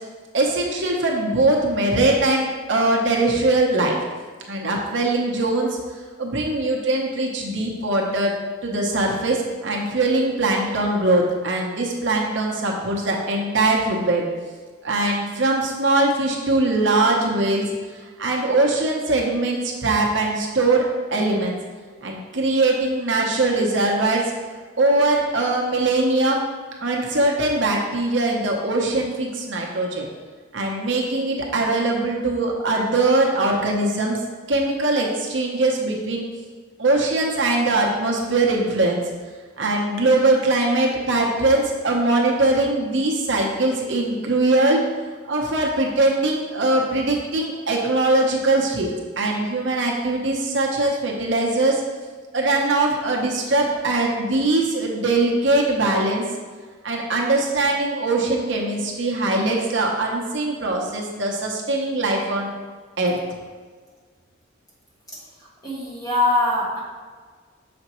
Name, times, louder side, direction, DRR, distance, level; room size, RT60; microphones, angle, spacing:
voice 1, 0.3-4.0 4.5-5.8 6.2-8.3 8.6-14.3 14.8-17.6 17.9-20.9 21.1-21.6 22.0-24.3 24.8-26.4 26.8-30.1 30.5-34.2 34.5-36.2 36.8-39.0 39.6-44.8 45.3-48.9 49.2-51.8 52.3-56.2 56.8-62.5 63.0-63.2, right 2 dB, 60° right, -1 dB, 0.8 m, -21 dB
voice 2, 65.6-66.8, left 2 dB, 20° left, -7 dB, 1.7 m, -22 dB
6.8 x 5.1 x 3.0 m, 1.5 s
head